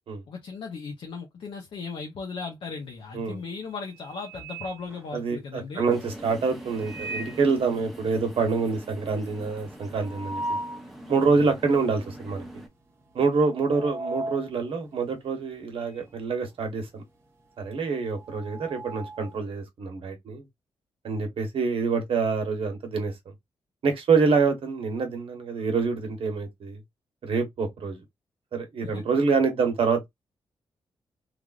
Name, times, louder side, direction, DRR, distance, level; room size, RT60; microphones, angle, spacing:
voice 1, 0.3-5.8 28.8-29.0, left 4 dB, 65° left, 0.6 m, -37 dB
sound 1, 2.8-3.2 3.6-5.6 6.6-7.6 8.0-8.1 8.3-8.4 8.8-10.9 11.4-11.5 12.3-12.6 12.9-16.2 16.4-19.4, right 1 dB, 25° right, 0.9 m, -38 dB
voice 2, 5.1-10.4 11.1-12.4 13.1-17.0 17.6-20.4 21.0-23.1 23.8-26.8 27.2-28.0 28.5-30.0, right 4 dB, 70° right, 1.0 m, -26 dB
sound 2, 5.9-12.7, right 1 dB, ahead, 0.7 m, -43 dB
3.3 x 2.4 x 2.4 m
cardioid pair, 105°, 10 cm